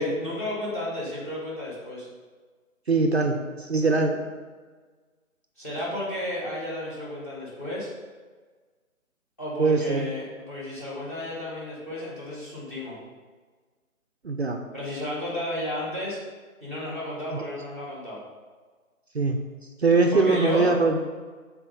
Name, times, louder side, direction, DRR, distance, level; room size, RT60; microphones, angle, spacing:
voice 1, 0.0-2.1 5.6-7.9 9.4-13.0 14.7-16.2 16.6-18.2 20.1-20.7, left 1 dB, 10° left, -5 dB, 1.2 m, -32 dB
voice 2, 2.9-4.2 9.6-10.1 14.2-14.6 17.3-17.5 19.1-19.4 19.8-21.0, right 3 dB, 50° right, 4 dB, 0.6 m, -22 dB
6.0 x 4.2 x 5.3 m, 1.4 s
figure-of-eight pair, 160°, 42 cm